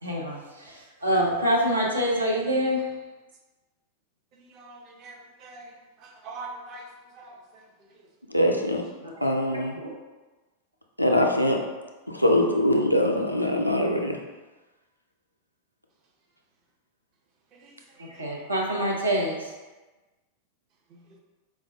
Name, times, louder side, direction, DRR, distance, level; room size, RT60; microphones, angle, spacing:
voice 1, 0.0-2.9 9.0-9.9 18.0-19.5, equal, 80° right, 0.6 m, -26 dB
voice 2, 4.5-5.6 6.2-6.8 7.2-7.3, right 3 dB, 40° right, 0.5 m, -41 dB
voice 3, 8.3-8.8 9.2-9.8 11.0-11.6 12.1-14.2, left 1 dB, 90° left, 0.3 m, -23 dB
4.4 x 2.1 x 2.7 m
figure-of-eight pair, 90°, 0 cm